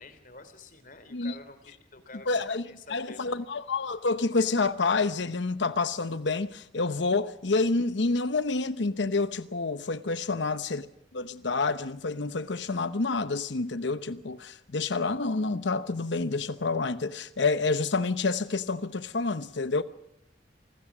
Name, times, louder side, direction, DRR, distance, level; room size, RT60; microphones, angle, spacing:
voice 1, 0.0-2.4 2.7-3.4 10.3-10.6, left 3 dB, 50° left, 3.2 m, -49 dB
voice 2, 2.3-2.6 2.9-10.9 11.1-19.8, left 3 dB, 80° left, 0.9 m, -28 dB
28.0 x 20.0 x 6.1 m
head